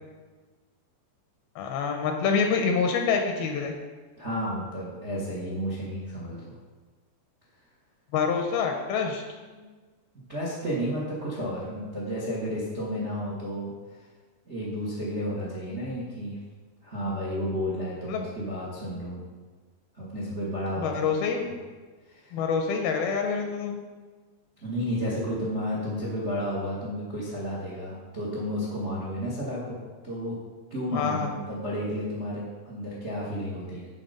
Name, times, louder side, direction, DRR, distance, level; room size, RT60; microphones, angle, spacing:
voice 1, 1.6-3.8 8.1-9.2 18.1-18.2 20.8-21.5 22.3-23.8 30.9-31.3, left 5 dB, 80° left, 4 dB, 2.4 m, -26 dB
voice 2, 4.2-6.4 9.5-9.6 10.3-13.7 14.5-16.4 16.8-19.2 20.0-21.1 22.1-22.3 24.6-29.8 30.0-30.4 30.7-33.9, equal, 75° right, -6 dB, 0.6 m, -32 dB
12.0 x 4.0 x 5.1 m, 1.4 s
omnidirectional pair, 4.6 m